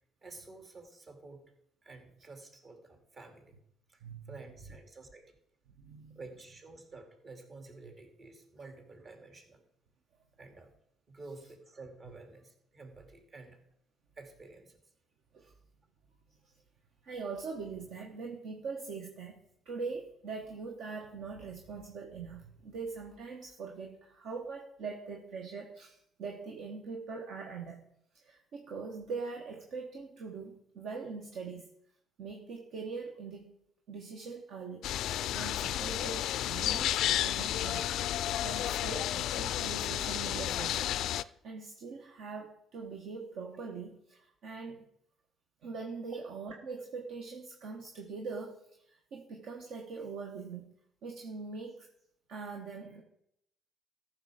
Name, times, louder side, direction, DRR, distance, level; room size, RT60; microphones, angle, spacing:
voice 1, 0.2-1.5 1.8-3.6 3.9-4.0 4.3-5.3 6.1-9.6 10.4-10.7 11.1-13.6 14.2-14.8 15.4-15.5 46.1-46.2, right 3 dB, 45° right, 4 dB, 2.4 m, -51 dB
voice 2, 4.0-4.3 5.8-6.2 15.3-15.5 16.4-16.5 17.0-27.8 28.1-31.7 32.2-33.5 33.9-44.9 45.6-50.7 51.0-51.9 52.3-53.0, right 4 dB, 70° right, 2 dB, 1.3 m, -42 dB
sound 1, 34.8-41.2, left 12 dB, 70° left, 0.3 m, -32 dB
14.0 x 6.5 x 5.0 m, 0.74 s
hypercardioid pair, 55°, 0 cm